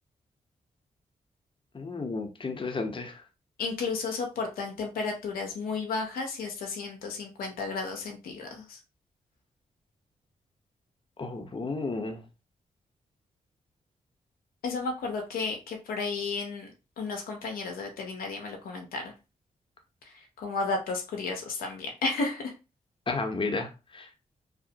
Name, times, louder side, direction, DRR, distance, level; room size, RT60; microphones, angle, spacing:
voice 1, 1.7-3.1 11.2-12.2 23.1-23.7 23.9-24.1, left 3 dB, 35° left, 0.7 m, -32 dB
voice 2, 3.6-8.8 14.6-16.7 17.0-19.1 20.4-22.5, left 4 dB, 80° left, 0.5 m, -33 dB
2.8 x 2.0 x 2.7 m
supercardioid pair, 40°, 15 cm